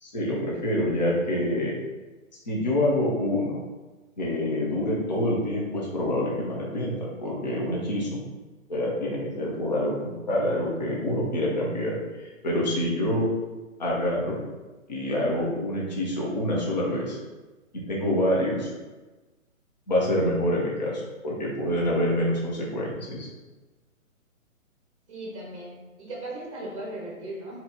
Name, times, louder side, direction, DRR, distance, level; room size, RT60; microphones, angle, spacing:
voice 1, 0.0-1.8 2.5-3.6 4.2-8.2 8.7-13.3 13.8-14.4 14.9-17.2 17.7-18.7 19.9-23.3, left 1 dB, 30° left, -3 dB, 0.8 m, -26 dB
voice 2, 25.1-27.6, right 1 dB, 20° right, -3 dB, 0.9 m, -37 dB
3.8 x 2.9 x 4.1 m, 1.2 s
hypercardioid pair, 180°, 41 cm